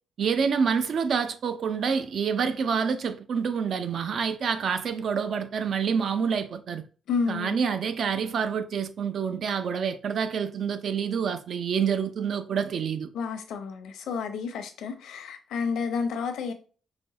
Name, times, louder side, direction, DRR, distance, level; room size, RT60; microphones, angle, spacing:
voice 1, 0.2-6.8 7.3-13.1, right 6 dB, 50° right, 0.5 m, -27 dB
voice 2, 7.1-7.6 13.1-16.5, left 5 dB, 85° left, 0.8 m, -30 dB
5.0 x 2.2 x 4.0 m
cardioid pair, 140°, 0 cm